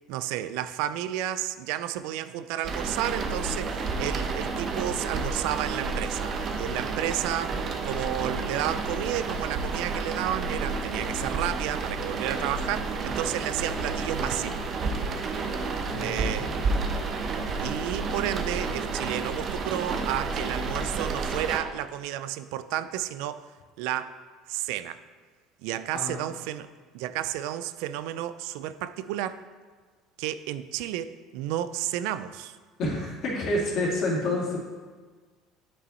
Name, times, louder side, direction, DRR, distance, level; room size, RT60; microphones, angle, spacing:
voice 1, 0.1-14.7 15.9-16.6 17.6-23.5 23.8-24.2 24.5-25.0 25.6-26.7 26.9-29.4 30.2-32.6, right 12 dB, 80° right, 14 dB, 0.3 m, -32 dB
sound 1, 2.6-21.6, right 4 dB, 45° right, 0.8 m, -30 dB
voice 2, 15.9-16.7 25.9-26.3 32.8-34.6, left 1 dB, 55° left, -4 dB, 2.3 m, -29 dB
8.3 x 5.4 x 4.1 m, 1.5 s
supercardioid pair, 110°, 0 cm